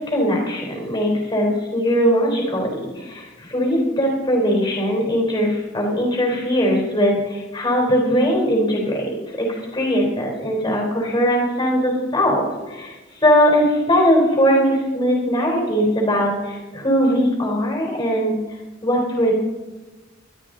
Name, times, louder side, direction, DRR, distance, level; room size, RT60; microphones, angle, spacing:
voice 1, 0.0-12.9 13.2-18.3 18.8-19.3, equal, 20° left, -1 dB, 3.8 m, -20 dB
20.5 x 12.5 x 3.9 m, 1.2 s
head